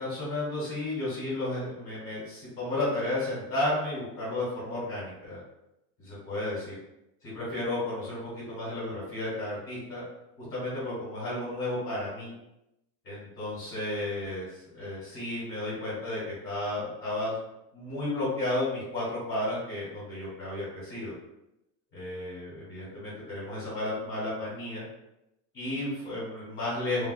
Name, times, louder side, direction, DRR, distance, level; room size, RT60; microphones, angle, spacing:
voice 1, 0.0-5.4 6.0-6.7 7.2-10.0 10.4-12.3 13.0-17.3 17.7-21.1 21.9-24.8 25.5-27.1, left 1 dB, 25° left, -9 dB, 1.0 m, -33 dB
3.2 x 2.3 x 2.5 m, 0.87 s
cardioid pair, 180°, 49 cm